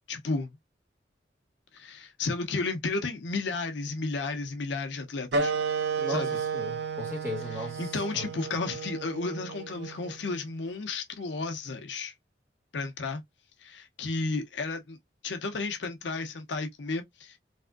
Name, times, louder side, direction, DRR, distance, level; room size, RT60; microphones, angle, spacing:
voice 1, 0.1-0.6 1.7-5.5 6.1-6.4 7.8-12.1 12.7-13.2 13.6-15.0 15.2-17.4, left 3 dB, 85° left, 0.7 m, -33 dB
sound 1, 5.3-10.4, right 5 dB, 75° right, 0.6 m, -32 dB
voice 2, 6.0-8.3, left 1 dB, 15° right, 1.4 m, -37 dB
3.4 x 2.5 x 2.2 m
head